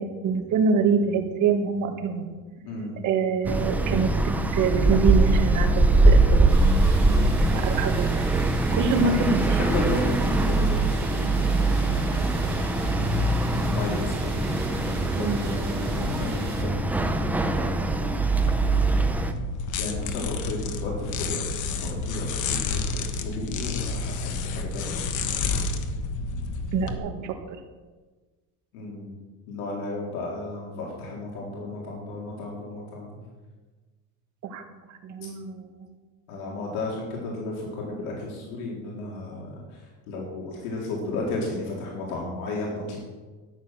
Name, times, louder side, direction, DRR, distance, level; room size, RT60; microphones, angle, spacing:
voice 1, 0.0-2.3 3.0-6.6 7.5-8.3 8.7-9.7 15.1-15.5 26.7-27.6 34.4-34.6 34.9-35.9, right 5 dB, 45° right, 4 dB, 1.9 m, -26 dB
voice 2, 2.6-3.0 7.0-7.4 9.0-9.1 9.4-14.4 15.2-17.8 19.8-22.6 22.9-25.6 28.7-29.1 29.5-33.2 36.3-39.8 40.1-43.0, left 2 dB, 85° left, -3 dB, 3.9 m, -34 dB
sound 1, 3.4-19.3, right 2 dB, 5° right, 0.6 m, -22 dB
sound 2, 6.5-16.6, right 4 dB, 25° right, 4.3 m, -43 dB
sound 3, 18.4-26.9, left 4 dB, 45° left, 1.3 m, -30 dB
13.5 x 9.6 x 6.4 m, 1.3 s
cardioid pair, 155°, 43 cm